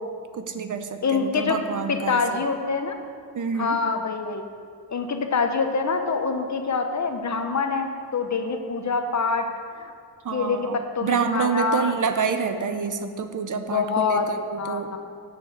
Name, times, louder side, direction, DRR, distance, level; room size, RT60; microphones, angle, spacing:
voice 1, 0.3-2.4 3.3-3.8 10.2-15.0, right 5 dB, 55° right, 8 dB, 0.9 m, -28 dB
voice 2, 1.0-1.6 1.9-3.0 3.6-4.4 4.9-9.4 9.7-9.9 10.3-11.9 13.7-14.3 14.6-15.0, left 4 dB, 50° left, 5 dB, 1.0 m, -25 dB
7.9 x 6.4 x 7.8 m, 2.3 s
cardioid pair, 85°, 37 cm